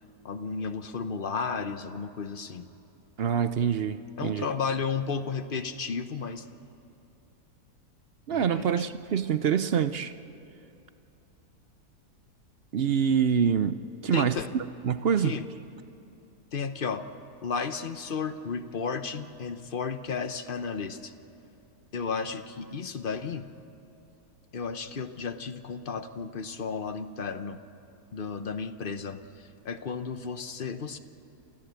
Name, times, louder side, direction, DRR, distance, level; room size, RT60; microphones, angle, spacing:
voice 1, 0.2-2.6 4.2-6.5 8.3-8.9 14.1-14.5 15.2-15.5 16.5-17.1 17.4-21.1 21.9-23.5 24.5-27.6 28.1-31.0, left 5 dB, 45° left, 10 dB, 0.7 m, -33 dB
voice 2, 3.2-4.5 8.3-10.1 12.7-13.8 14.0-15.4, right 7 dB, 65° right, 12 dB, 0.6 m, -26 dB
29.5 x 13.5 x 8.2 m, 2.9 s
omnidirectional pair, 1.7 m